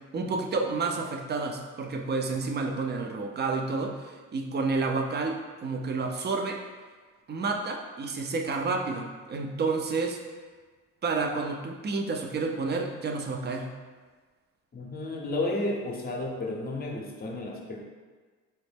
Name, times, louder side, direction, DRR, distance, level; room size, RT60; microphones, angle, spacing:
voice 1, 0.0-6.6 7.3-10.2 11.0-13.7, right 4 dB, 35° right, 3 dB, 0.4 m, -30 dB
voice 2, 14.7-17.8, left 2 dB, 30° left, 0 dB, 0.6 m, -32 dB
4.1 x 2.0 x 3.4 m, 1.4 s
cardioid pair, 90°, 30 cm